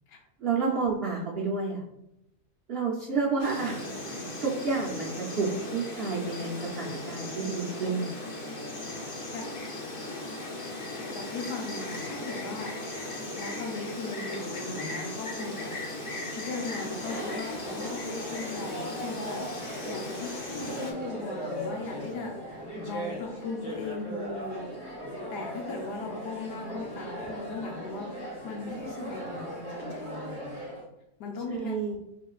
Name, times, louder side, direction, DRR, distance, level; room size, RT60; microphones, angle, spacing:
voice 1, 0.4-1.8 2.7-4.1 4.4-8.3 31.5-32.0, right 4 dB, 65° right, -5 dB, 0.6 m, -30 dB
Insect, 3.4-20.9, left 1 dB, 45° left, 0.7 m, -37 dB
voice 2, 9.3-9.9 10.9-12.7 13.1-24.7 25.3-28.1 28.4-30.6 31.2-31.8, left 3 dB, 85° left, 0 dB, 1.3 m, -38 dB
Chatter, 16.7-30.8, equal, 60° left, 2.1 m, -38 dB
4.3 x 3.7 x 2.3 m, 0.85 s
omnidirectional pair, 1.7 m